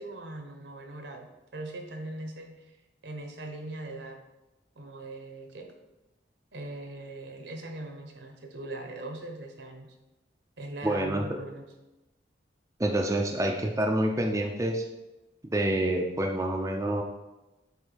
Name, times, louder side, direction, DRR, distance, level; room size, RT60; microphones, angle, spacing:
voice 1, 0.0-2.8 3.0-4.2 4.8-5.7 6.5-9.9 10.6-11.7 13.2-13.3 13.6-13.9, right 2 dB, 75° right, 3 dB, 1.1 m, -41 dB
voice 2, 10.8-11.2 12.8-14.8 15.5-17.0, right 1 dB, 15° right, 1 dB, 0.5 m, -27 dB
7.9 x 2.7 x 5.2 m, 1.0 s
head